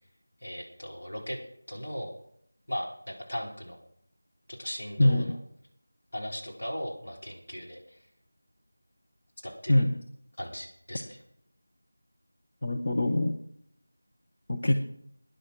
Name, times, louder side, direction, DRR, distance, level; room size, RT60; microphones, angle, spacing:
voice 1, 0.4-1.4 1.7-2.1 2.7-3.8 4.5-5.4 6.1-8.0 9.4-9.8 10.4-11.2, equal, 65° left, -1 dB, 3.9 m, -38 dB
voice 2, 5.0-5.3 9.7-9.9 12.6-13.3 14.5-14.7, left 1 dB, 35° left, 3 dB, 0.8 m, -23 dB
11.5 x 10.0 x 6.2 m, 0.71 s
figure-of-eight pair, 180°, 0 cm